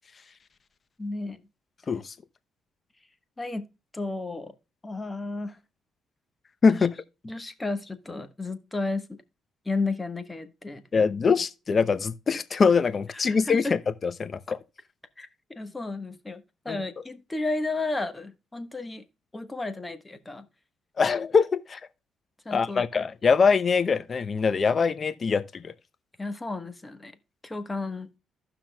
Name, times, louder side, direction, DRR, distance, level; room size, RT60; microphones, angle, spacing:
voice 1, 1.0-1.4 3.4-3.7 3.9-4.5 4.8-5.6 6.7-6.9 7.2-9.2 9.6-10.8 13.1-13.8 15.2-19.0 19.3-20.5 22.4-22.9 26.2-27.1 27.4-28.1, left 3 dB, 20° left, 1.2 m, -33 dB
voice 2, 6.6-6.9 10.9-14.6 16.7-16.8 21.0-21.8 22.5-25.7, left 5 dB, 40° left, 0.7 m, -23 dB
15.0 x 5.9 x 2.3 m
cardioid pair, 90°, 0 cm